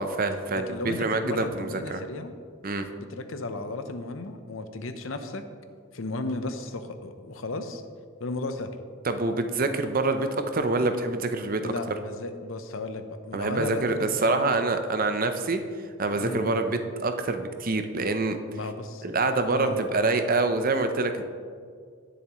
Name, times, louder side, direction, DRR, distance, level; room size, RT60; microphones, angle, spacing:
voice 1, 0.0-2.0 2.6-2.9 9.1-11.7 13.3-15.6 16.0-18.4 19.0-21.2, right 3 dB, 45° right, 8 dB, 0.7 m, -26 dB
voice 2, 0.5-2.3 3.0-5.5 5.9-7.8 8.2-8.7 11.6-14.6 16.1-16.4 18.5-19.1 19.5-19.9, left 2 dB, 70° left, 8 dB, 0.8 m, -34 dB
18.5 x 7.0 x 3.1 m, 2.1 s
head